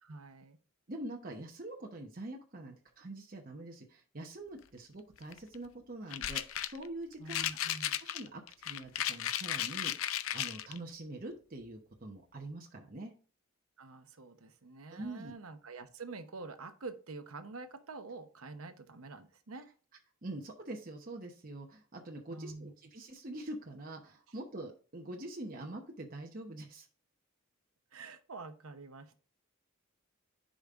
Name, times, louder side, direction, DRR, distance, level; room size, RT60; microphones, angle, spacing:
voice 1, 0.0-0.6 7.2-8.0 13.8-19.7 22.3-22.7 27.9-29.2, right 3 dB, 90° right, 9 dB, 0.9 m, -47 dB
voice 2, 0.9-7.7 8.0-9.9 10.3-13.1 14.9-15.3 20.2-26.9, right 1 dB, 40° right, 1 dB, 0.9 m, -44 dB
sound 1, 5.2-5.5 6.1-6.9 7.3-10.8, left 11 dB, 80° left, 0.5 m, -35 dB
10.5 x 5.1 x 2.5 m, 0.40 s
head